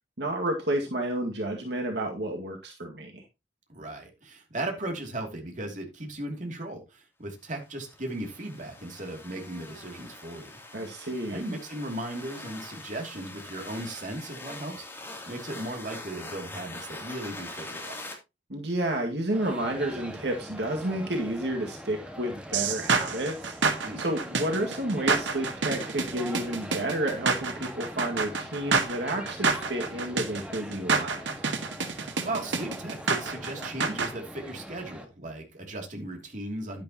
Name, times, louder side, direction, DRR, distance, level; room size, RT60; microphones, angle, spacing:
voice 1, 0.2-3.2 10.7-11.4 18.5-23.6 24.0-31.2, right 1 dB, 65° right, 2 dB, 2.1 m, -31 dB
voice 2, 3.7-10.6 11.3-18.0 23.8-24.0 31.8-36.8, right 1 dB, 45° right, 3 dB, 2.9 m, -37 dB
sound 1, 7.7-18.1, left 2 dB, 10° left, 3.1 m, -43 dB
sound 2, 19.3-35.1, equal, 5° right, 1.7 m, -42 dB
sound 3, 22.5-34.1, right 4 dB, 90° right, 1.7 m, -28 dB
11.0 x 10.5 x 3.0 m, 0.24 s
head